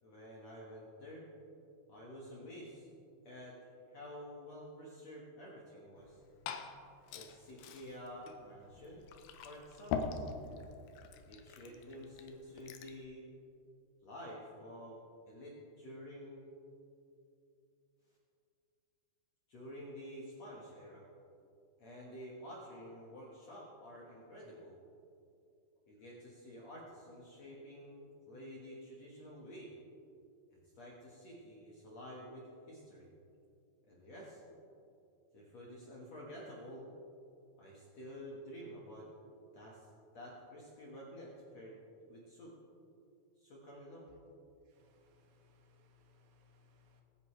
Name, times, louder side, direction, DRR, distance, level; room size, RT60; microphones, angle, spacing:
voice 1, 0.0-1.3 1.9-2.9 3.2-3.6 3.9-6.2 7.1-9.0 9.4-10.3 11.3-13.3 14.0-15.0 15.3-16.5 19.5-21.1 21.8-24.8 25.9-29.7 30.5-33.1 33.9-34.4 35.3-36.9 37.6-39.1 39.5-42.5 43.4-44.0, equal, 60° left, -4 dB, 1.8 m, -50 dB
Liquid, 6.0-13.0, left 6 dB, 75° left, 2.4 m, -44 dB
voice 2, 44.7-47.0, left 3 dB, 85° right, 3 dB, 3.6 m, -68 dB
22.0 x 9.4 x 3.2 m, 2.6 s
omnidirectional pair, 5.1 m